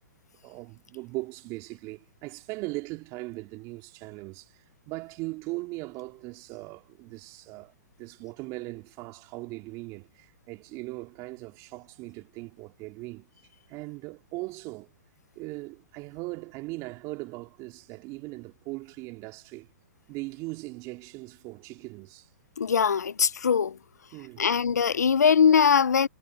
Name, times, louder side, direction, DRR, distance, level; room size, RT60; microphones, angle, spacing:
voice 1, 0.4-13.3 13.7-14.9 15.3-19.7 20.1-22.3 24.1-24.4, right 23 dB, 35° right, 3.2 m, -39 dB
voice 2, 22.6-23.8 24.4-26.1, left 7 dB, 85° left, 0.6 m, -21 dB
hypercardioid pair, 125°, 9 cm